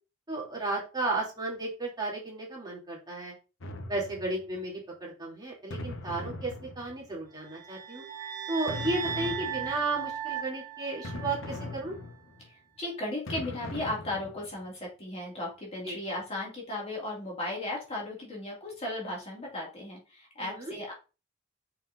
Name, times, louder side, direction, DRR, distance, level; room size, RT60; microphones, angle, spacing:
voice 1, 0.3-3.3 3.9-8.0 8.5-11.9 15.8-16.0 20.4-20.7, right 2 dB, 20° right, -4 dB, 2.9 m, -34 dB
sound 1, 3.6-4.6 5.7-7.3 8.7-10.1 11.0-12.5 13.3-14.7, left 2 dB, 65° left, 0.9 m, -40 dB
sound 2, 7.4-11.7, right 8 dB, 40° right, 1.7 m, -37 dB
voice 2, 12.4-20.9, left 1 dB, 30° left, -3 dB, 2.3 m, -36 dB
6.5 x 5.6 x 2.6 m, 0.32 s
head